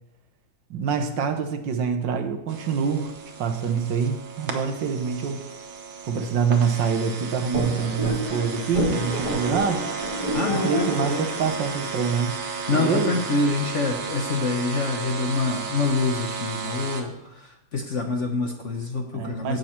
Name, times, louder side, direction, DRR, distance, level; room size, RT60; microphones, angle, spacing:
voice 1, 0.7-3.1 3.4-5.4 6.1-9.8 10.5-12.3 12.7-13.2 19.1-19.6, right 6 dB, 70° right, 7 dB, 1.6 m, -25 dB
sound 1, 2.5-17.0, right 5 dB, 85° right, 2.0 m, -34 dB
sound 2, 7.5-12.6, equal, 15° left, 3.7 m, -30 dB
voice 2, 10.3-11.3 12.7-19.6, left 3 dB, 50° left, 3 dB, 1.0 m, -26 dB
16.0 x 6.5 x 4.4 m, 0.86 s
omnidirectional pair, 2.2 m